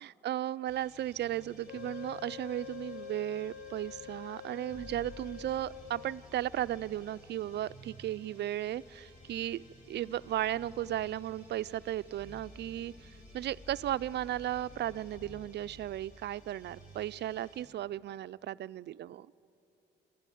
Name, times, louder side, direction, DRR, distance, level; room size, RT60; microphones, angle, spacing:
voice 1, 0.0-9.6 9.9-12.9 13.3-19.3, right 12 dB, 60° right, 17 dB, 0.4 m, -35 dB
sound 1, 0.7-17.7, left 1 dB, 40° left, 5.4 m, -54 dB
Wind instrument woodwind instrument, 1.7-6.3, left 9 dB, 70° left, 1.0 m, -47 dB
26.0 x 13.0 x 9.3 m, 3.0 s
cardioid pair, 90°, 20 cm